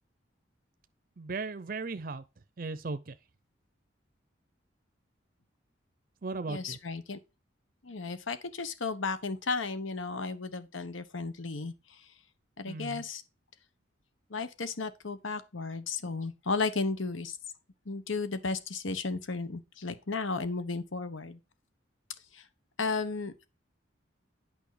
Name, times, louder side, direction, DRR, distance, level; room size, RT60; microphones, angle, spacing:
voice 1, 1.2-2.2 2.6-3.2 6.2-6.8 12.7-13.0, right 3 dB, 45° right, 0.5 m, -37 dB
voice 2, 6.5-7.2 7.8-12.1 12.6-13.2 14.3-17.4 17.8-21.4 22.3-22.4 22.8-23.5, left 4 dB, 85° left, 1.1 m, -34 dB
9.1 x 5.5 x 4.9 m
head